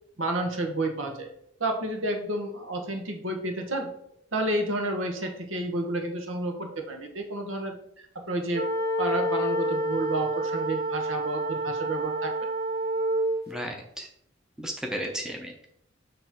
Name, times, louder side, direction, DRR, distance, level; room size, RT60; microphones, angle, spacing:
voice 1, 0.2-1.3 1.6-3.9 4.3-7.8 8.1-8.7 9.0-12.3, right 1 dB, 80° right, 4 dB, 1.3 m, -30 dB
sound 1, 8.5-13.4, right 1 dB, 50° right, 0.6 m, -28 dB
voice 2, 13.5-14.1 14.6-15.7, equal, 5° right, 1 dB, 0.8 m, -34 dB
6.8 x 3.3 x 6.0 m, 0.74 s
head